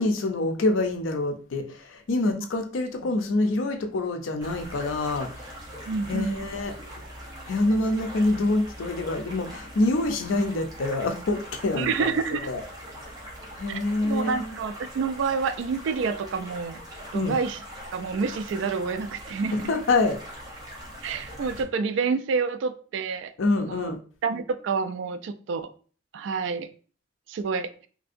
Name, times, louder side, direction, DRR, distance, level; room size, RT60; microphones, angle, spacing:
voice 1, 0.0-5.3 6.1-6.7 7.5-12.2 12.4-12.6 13.6-14.6 17.1-17.4 19.5-20.2 23.4-24.0, left 2 dB, 80° left, 6 dB, 0.5 m, -26 dB
sound 1, 4.4-21.6, equal, 20° right, 0.7 m, -42 dB
voice 2, 5.9-6.4 11.7-12.5 13.7-16.8 17.1-17.6 17.9-19.7 21.0-23.9 24.2-25.7 26.1-26.7 27.3-27.9, right 5 dB, 70° right, 12 dB, 0.3 m, -28 dB
3.2 x 2.6 x 2.5 m, 0.41 s
head